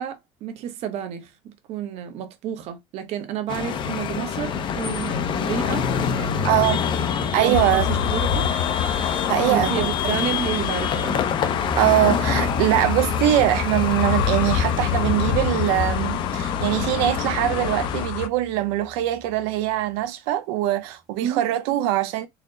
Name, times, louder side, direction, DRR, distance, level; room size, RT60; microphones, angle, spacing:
voice 1, 0.0-5.9 6.1-6.8 7.4-8.5 9.5-11.2 21.2-21.4, right 10 dB, 55° right, 0.9 m, -30 dB
sound 1, 3.5-18.1, left 7 dB, 40° left, 0.6 m, -26 dB
voice 2, 6.4-6.8 7.3-7.9 9.3-9.9 11.8-22.3, right 14 dB, 85° right, 0.7 m, -22 dB
sound 2, 7.5-18.3, left 9 dB, 80° left, 0.6 m, -27 dB
sound 3, 11.7-19.8, right 1 dB, ahead, 0.9 m, -36 dB
4.2 x 2.1 x 3.8 m
cardioid pair, 145°, 13 cm